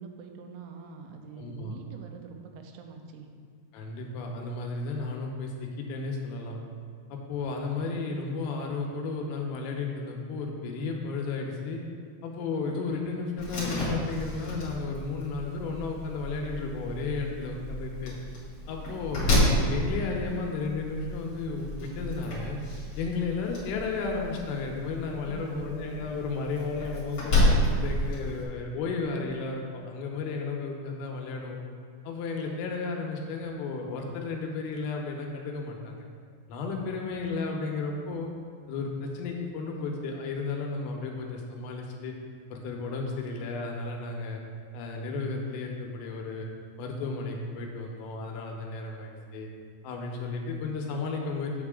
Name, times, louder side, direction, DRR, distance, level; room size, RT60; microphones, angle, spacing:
voice 1, 0.0-3.3 25.2-25.9, right 5 dB, 90° right, 4 dB, 3.3 m, -45 dB
voice 2, 1.4-1.7 3.7-6.6 7.1-11.8 12.2-18.2 18.7-22.6 23.0-27.5 27.8-31.6 32.1-36.1 36.5-38.3 38.7-42.1 42.5-44.4 44.7-46.5 46.8-49.5 49.8-51.7, left 4 dB, 90° left, 1 dB, 3.6 m, -33 dB
Slam, 13.4-28.4, left 1 dB, 50° left, 1.5 m, -30 dB
7.8 x 7.5 x 3.7 m, 2.2 s
omnidirectional pair, 5.8 m